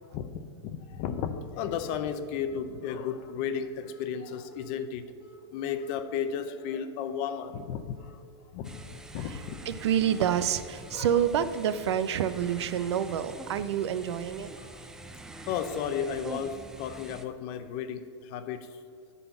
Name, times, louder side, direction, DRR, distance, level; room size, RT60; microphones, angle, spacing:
voice 1, 0.6-5.1 5.5-8.2 8.5-9.6 10.9-11.2 14.6-14.8 15.4-18.8, left 7 dB, 35° left, 10 dB, 0.6 m, -34 dB
sound 1, 1.1-1.3 1.8-2.0 2.4-2.7 3.1-3.3 3.8-4.0 4.5-4.7 5.2-5.4 5.9-6.1 6.6-6.8 7.3-7.5 8.0-8.2 8.6-8.9 9.3-9.6 10.0-10.2 10.7-10.9 11.4-11.6, right 1 dB, 20° right, 2.1 m, -56 dB
sound 2, 8.6-17.2, right 2 dB, 5° right, 0.3 m, -45 dB
voice 2, 9.7-14.5, right 9 dB, 70° right, 13 dB, 0.6 m, -28 dB
10.0 x 4.2 x 7.0 m, 2.3 s
supercardioid pair, 150°, 15 cm